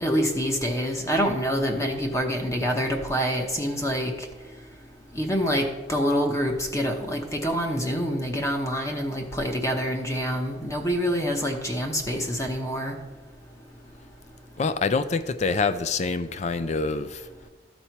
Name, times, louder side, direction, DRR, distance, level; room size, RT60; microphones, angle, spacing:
voice 1, 0.0-4.1 5.1-12.9, equal, 15° left, 2 dB, 0.8 m, -26 dB
voice 2, 14.6-17.3, left 4 dB, 35° left, 12 dB, 0.4 m, -26 dB
13.0 x 4.3 x 4.5 m, 1.2 s
head